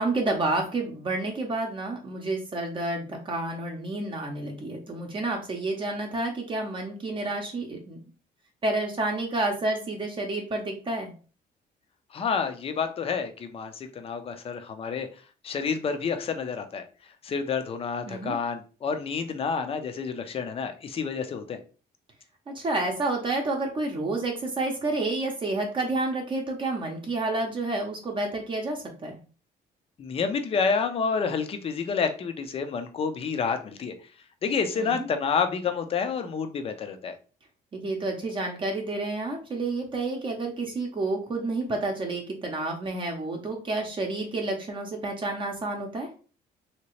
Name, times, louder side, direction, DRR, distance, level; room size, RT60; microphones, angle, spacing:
voice 1, 0.0-8.0 8.6-11.1 18.1-18.3 22.5-29.2 34.8-35.1 37.7-46.1, right 2 dB, 30° right, 1 dB, 0.7 m, -30 dB
voice 2, 12.1-15.1 15.4-16.8 17.2-21.6 30.0-33.9 34.4-37.1, left 5 dB, 35° left, 7 dB, 0.5 m, -29 dB
3.2 x 2.8 x 3.0 m, 0.36 s
cardioid pair, 150°, 17 cm